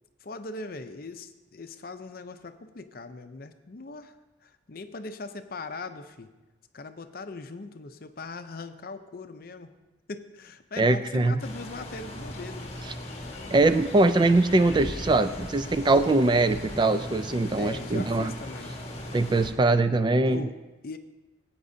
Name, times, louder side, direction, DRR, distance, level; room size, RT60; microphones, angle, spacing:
voice 1, 0.2-4.2 4.4-6.3 6.7-9.7 10.1-12.8 15.6-15.7 17.6-18.8 20.3-20.6 20.8-21.0, left 3 dB, 50° left, 9 dB, 0.6 m, -40 dB
voice 2, 10.8-11.4 13.5-18.3 19.1-20.5, right 2 dB, 25° right, 11 dB, 0.3 m, -22 dB
sound 1, 11.4-19.5, left 1 dB, 35° left, 1.3 m, -38 dB
18.0 x 8.7 x 2.7 m, 1.1 s
head